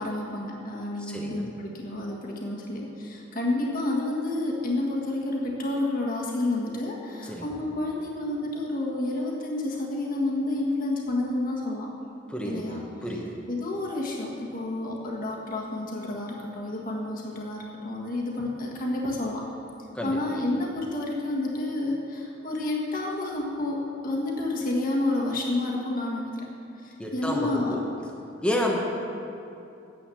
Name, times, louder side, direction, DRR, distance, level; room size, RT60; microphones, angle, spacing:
voice 1, 0.0-11.9 12.4-12.8 13.5-19.4 20.0-26.5 27.1-27.9, left 2 dB, 50° left, -2 dB, 1.6 m, -29 dB
voice 2, 1.0-1.5 7.2-7.5 12.3-13.4 19.9-20.2 27.0-27.8 28.4-28.8, left 1 dB, 5° left, -1 dB, 1.0 m, -30 dB
10.0 x 7.7 x 7.1 m, 2.7 s
head